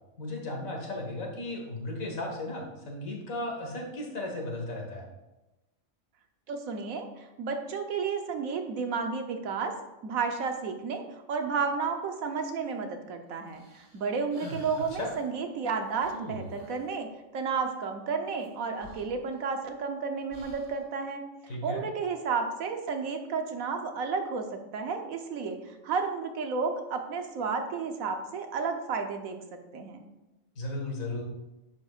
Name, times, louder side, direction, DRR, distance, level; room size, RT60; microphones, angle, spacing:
voice 1, 0.2-5.1 15.0-15.1 21.5-21.8 30.6-31.2, left 2 dB, 85° left, 0 dB, 2.1 m, -35 dB
voice 2, 6.5-9.7 10.0-11.0 11.3-17.1 17.3-21.2 21.6-29.4 29.7-30.0, right 5 dB, 90° right, 5 dB, 1.3 m, -32 dB
sound 1, 13.5-15.1 16.0-16.9 18.4-18.5 18.8-19.8 20.3-20.8, right 1 dB, 60° right, 2.5 m, -45 dB
10.0 x 7.9 x 2.5 m, 1.0 s
omnidirectional pair, 1.4 m